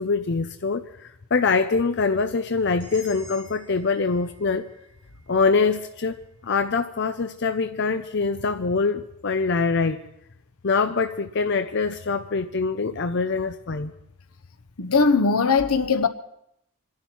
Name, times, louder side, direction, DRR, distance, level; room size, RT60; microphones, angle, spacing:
voice 1, 0.0-4.7 5.3-6.2 6.4-10.0 10.6-13.9, left 4 dB, 50° left, 0.6 m, -24 dB
sound 1, 2.8-6.8, left 2 dB, 20° right, 5.6 m, -49 dB
voice 2, 14.8-16.1, left 4 dB, 80° left, 1.0 m, -19 dB
26.0 x 11.5 x 4.5 m
head